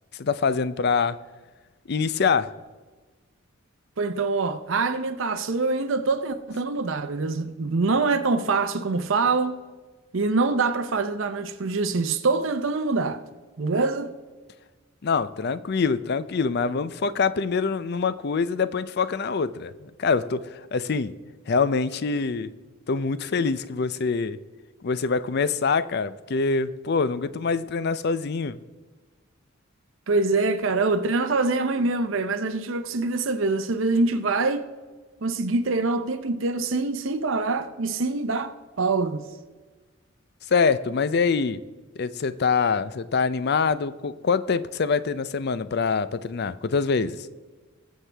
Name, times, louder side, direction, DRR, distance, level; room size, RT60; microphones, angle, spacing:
voice 1, 0.2-1.2 1.9-2.5 15.0-21.1 21.5-22.5 22.9-24.4 24.8-28.6 40.5-41.6 42.0-47.3, left 5 dB, 50° left, 0.5 m, -25 dB
voice 2, 4.0-9.6 10.1-13.2 13.6-14.1 30.1-34.7 35.2-39.3, right 3 dB, 70° right, 0.7 m, -25 dB
21.5 x 7.4 x 3.4 m
head